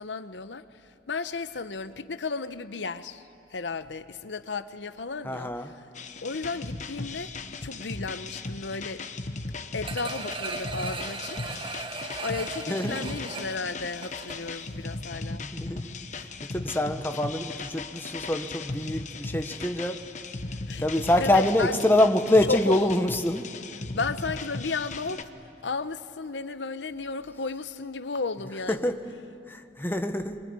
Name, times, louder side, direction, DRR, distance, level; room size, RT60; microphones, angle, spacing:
voice 1, 0.0-3.2 3.5-5.5 6.2-7.3 7.6-9.0 9.7-11.4 12.2-15.4 20.7-20.8 21.2-21.8 22.5-22.9 23.9-25.3 25.6-28.9, left 4 dB, 90° left, 12 dB, 0.9 m, -33 dB
voice 2, 5.2-5.7 12.7-13.1 15.4-20.0 20.8-23.5 28.7-29.1 29.5-30.4, left 1 dB, 10° left, 6 dB, 1.1 m, -26 dB
sound 1, 5.9-25.2, left 3 dB, 45° left, 1.1 m, -37 dB
sound 2, 9.8-14.6 15.0-15.1, right 3 dB, 30° right, 1.2 m, -37 dB
25.0 x 23.0 x 9.7 m, 2.6 s
head